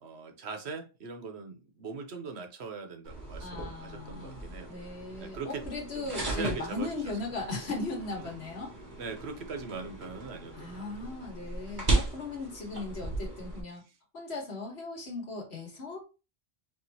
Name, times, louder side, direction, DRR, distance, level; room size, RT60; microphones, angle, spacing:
voice 1, 0.0-4.7 5.2-5.6 5.9-6.9 8.2-8.3 9.0-10.8, right 4 dB, 85° right, 1.2 m, -41 dB
sound 1, 3.0-13.6, right 2 dB, 50° right, 1.4 m, -36 dB
voice 2, 3.4-8.7 10.5-13.8 14.1-16.1, left 3 dB, 80° left, 1.7 m, -38 dB
4.8 x 3.4 x 2.8 m
omnidirectional pair, 1.1 m